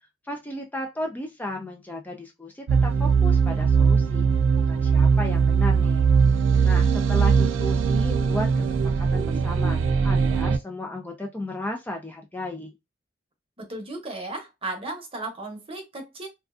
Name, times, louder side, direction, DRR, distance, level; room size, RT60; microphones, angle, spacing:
voice 1, 0.3-4.3 4.7-6.1 6.6-8.7 8.9-12.7, left 1 dB, 10° left, 0.3 m, -34 dB
sound 1, 2.7-10.6, right 5 dB, 85° right, 0.3 m, -20 dB
voice 2, 13.6-16.3, right 2 dB, 30° right, 0.8 m, -35 dB
2.4 x 2.3 x 2.3 m
head